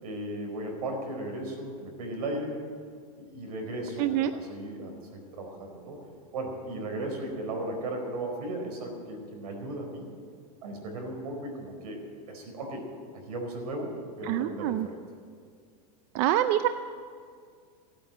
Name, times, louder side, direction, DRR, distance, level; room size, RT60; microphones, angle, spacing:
voice 1, 0.0-2.5 3.3-6.0 6.3-10.0 10.6-12.8 13.3-15.0, right 1 dB, 80° right, 3 dB, 4.7 m, -36 dB
voice 2, 4.0-4.3 14.2-14.9 16.1-16.7, right 12 dB, 45° right, 11 dB, 0.5 m, -25 dB
15.5 x 9.2 x 8.9 m, 2.1 s
supercardioid pair, 150°, 20 cm